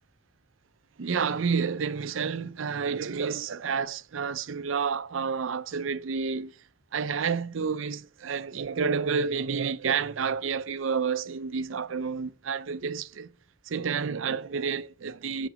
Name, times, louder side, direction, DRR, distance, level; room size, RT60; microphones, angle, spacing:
voice 1, 1.0-6.5 6.9-13.3 13.7-15.5, right 5 dB, 85° right, 0.5 m, -30 dB
7.1 x 6.1 x 5.0 m
head